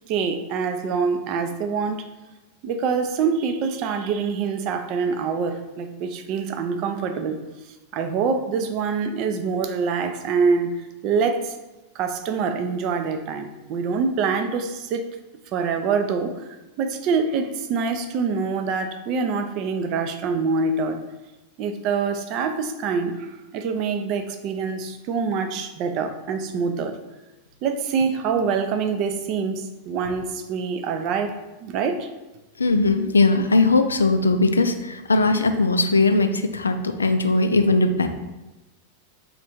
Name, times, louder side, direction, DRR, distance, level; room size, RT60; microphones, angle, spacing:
voice 1, 0.1-2.0 2.6-7.4 7.9-10.7 11.0-11.5 11.9-15.0 15.5-16.3 16.8-21.0 21.6-27.0 27.6-32.1, right 5 dB, 40° right, 7 dB, 0.4 m, -25 dB
voice 2, 32.6-38.1, left 3 dB, 75° left, 7 dB, 0.3 m, -19 dB
3.1 x 2.5 x 4.4 m, 1.0 s
figure-of-eight pair, 90°, 0 cm